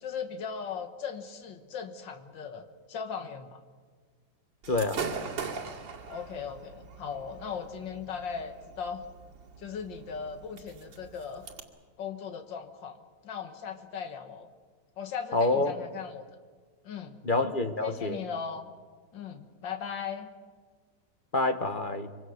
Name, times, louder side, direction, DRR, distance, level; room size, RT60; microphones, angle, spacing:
voice 1, 0.0-3.6 6.1-9.1 9.6-11.5 12.0-13.0 13.2-14.5 15.0-16.2 16.8-17.2 17.8-18.7 19.1-20.3, left 6 dB, 80° left, 6 dB, 2.2 m, -38 dB
Gunshot gunfire / Fireworks, 4.6-11.6, right 6 dB, 75° right, 3.0 m, -41 dB
voice 2, 4.7-5.0 15.3-15.7 17.2-18.2 21.3-22.1, left 2 dB, 30° left, 7 dB, 1.1 m, -27 dB
25.5 x 24.5 x 6.5 m, 1.5 s
omnidirectional pair, 2.0 m